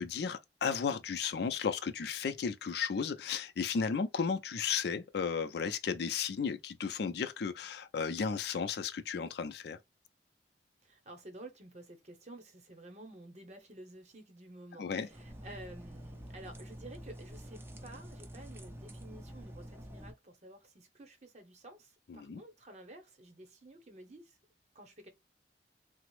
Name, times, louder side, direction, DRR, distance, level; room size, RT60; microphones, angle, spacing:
voice 1, 0.0-9.8 14.8-15.1 22.1-22.4, left 6 dB, 60° left, 0.4 m, -34 dB
voice 2, 10.8-24.4 24.7-25.1, right 1 dB, 40° right, 0.8 m, -52 dB
sound 1, 15.1-20.1, equal, 15° right, 0.4 m, -48 dB
3.4 x 2.0 x 3.0 m
head